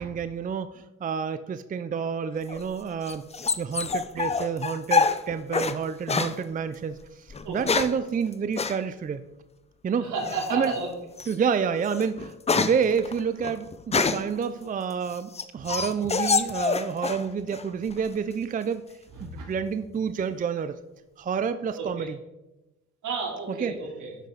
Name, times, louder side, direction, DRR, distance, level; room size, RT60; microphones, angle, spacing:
voice 1, 0.0-3.3 3.6-9.2 9.8-10.1 10.5-10.8 11.3-18.9 19.2-20.8 21.2-22.2 23.5-23.8, right 6 dB, 30° right, 11 dB, 0.4 m, -29 dB
sound 1, 2.5-5.8 6.1-6.4 7.3-8.0 8.6-8.8 10.2-10.6 11.2-11.3 11.8-14.4 14.9-17.2 17.5-18.1, left 5 dB, 20° left, 0.6 m, -26 dB
voice 2, 10.0-10.9 15.6-15.7 19.2-19.5 21.8-22.1 23.0-24.1, right 4 dB, 75° right, -2 dB, 3.3 m, -32 dB
11.0 x 6.7 x 3.9 m, 0.99 s
cardioid pair, 90°, 30 cm